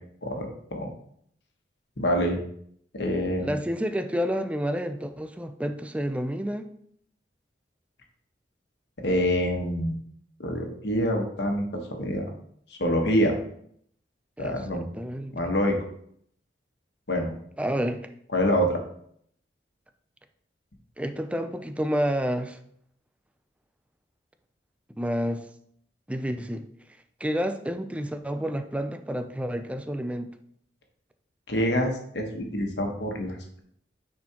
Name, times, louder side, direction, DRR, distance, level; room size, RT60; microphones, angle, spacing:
voice 1, 0.2-0.9 2.0-2.4 2.9-3.5 9.0-10.0 10.4-11.6 12.0-12.2 12.8-13.3 14.4-14.9 15.3-15.8 17.1-17.3 18.3-18.8 31.5-33.6, equal, 70° left, 2 dB, 1.3 m, -26 dB
voice 2, 3.4-6.7 14.4-15.4 17.6-18.1 21.0-22.6 25.0-25.5 26.1-26.6 27.2-30.3, equal, 5° right, 8 dB, 0.4 m, -29 dB
9.5 x 4.3 x 2.9 m, 0.67 s
head